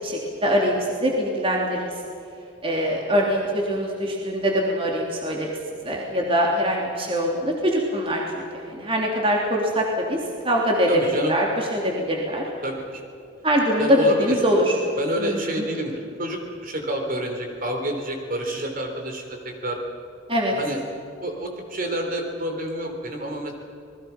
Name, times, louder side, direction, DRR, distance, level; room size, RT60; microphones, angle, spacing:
voice 1, 0.0-0.7 1.0-1.9 2.6-5.5 5.8-10.2 10.4-10.9 11.1-12.4 13.4-14.7 15.2-15.6 20.3-20.5, equal, 30° right, -1 dB, 3.2 m, -23 dB
voice 2, 10.9-11.3 12.6-13.0 13.8-14.4 15.0-19.4 19.6-19.8 20.5-20.8 21.2-23.5, right 1 dB, 45° right, 3 dB, 3.6 m, -28 dB
28.5 x 20.5 x 5.9 m, 2.6 s
head